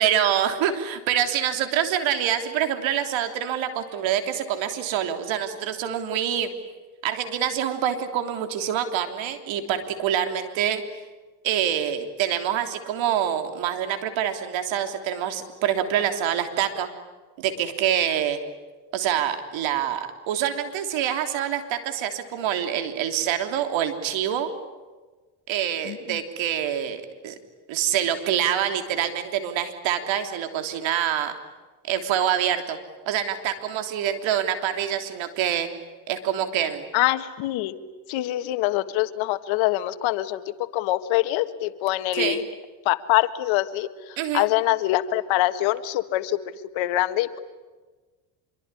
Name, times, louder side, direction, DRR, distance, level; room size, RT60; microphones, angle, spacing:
voice 1, 0.0-6.5 7.0-10.8 11.4-16.9 17.4-18.4 18.9-24.5 25.5-27.3 27.7-31.3 31.9-32.8 33.1-35.7 36.1-36.9 42.1-42.4 44.2-44.5, right 10 dB, 65° right, 7 dB, 3.4 m, -26 dB
voice 2, 25.8-26.2 36.9-37.7 38.1-42.4 42.8-46.4 46.7-47.4, left 15 dB, 70° left, 12 dB, 1.7 m, -24 dB
26.0 x 23.5 x 9.9 m, 1.3 s
supercardioid pair, 80°, 49 cm